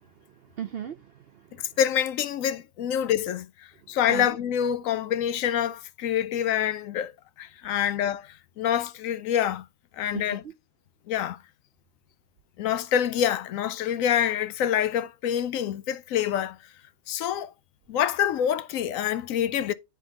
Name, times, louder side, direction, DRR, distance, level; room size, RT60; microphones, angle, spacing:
voice 1, 0.0-1.8 4.1-4.4 7.6-7.9 10.1-10.4, right 9 dB, 60° right, 0.7 m, -39 dB
voice 2, 1.5-7.1 7.4-9.6 9.9-10.4 11.1-11.4 12.6-16.6 17.1-17.5 17.9-19.7, left 10 dB, 75° left, 1.0 m, -26 dB
9.7 x 3.8 x 3.6 m
omnidirectional pair, 1.4 m